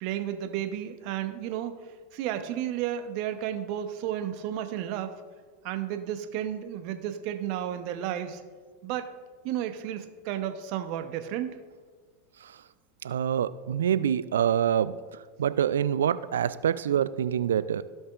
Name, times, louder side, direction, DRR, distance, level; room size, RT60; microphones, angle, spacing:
voice 1, 0.0-1.7 2.1-5.2 5.6-8.4 8.8-9.1 9.4-11.6, right 11 dB, 55° right, 8 dB, 0.7 m, -32 dB
voice 2, 13.0-14.9 15.4-17.8, right 9 dB, 75° right, 15 dB, 0.3 m, -25 dB
16.0 x 5.4 x 2.4 m, 1.5 s
hypercardioid pair, 90°, 0 cm